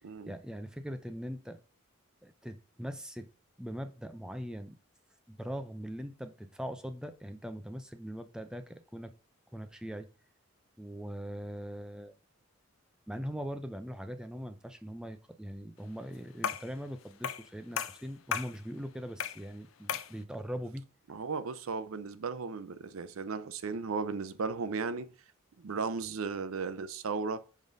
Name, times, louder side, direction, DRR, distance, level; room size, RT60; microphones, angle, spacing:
voice 1, 0.3-1.6 2.2-3.3 3.6-4.8 5.3-9.1 9.5-10.1 10.8-12.1 13.1-20.8, equal, 5° right, 0.4 m, -41 dB
sound 1, 16.4-16.7 17.2-17.5 17.8-18.6 19.2-19.5 19.9-20.2, left 8 dB, 70° left, 0.5 m, -35 dB
voice 2, 21.1-25.1 25.6-27.4, right 4 dB, 75° right, 0.5 m, -35 dB
5.1 x 3.9 x 5.2 m
head